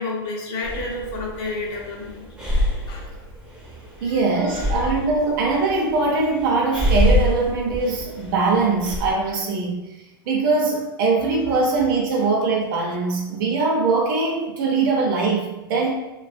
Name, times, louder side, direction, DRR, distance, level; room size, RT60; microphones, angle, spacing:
voice 1, 0.0-2.3 2.9-3.1 4.1-4.2 4.5-4.8, left 2 dB, 40° left, -1 dB, 0.7 m, -30 dB
Breathing, 0.6-9.1, left 1 dB, 5° right, 0.7 m, -26 dB
voice 2, 4.0-9.8 10.3-15.9, right 3 dB, 55° right, -1 dB, 0.6 m, -21 dB
2.4 x 2.3 x 2.3 m, 1.0 s
hypercardioid pair, 110°, 13 cm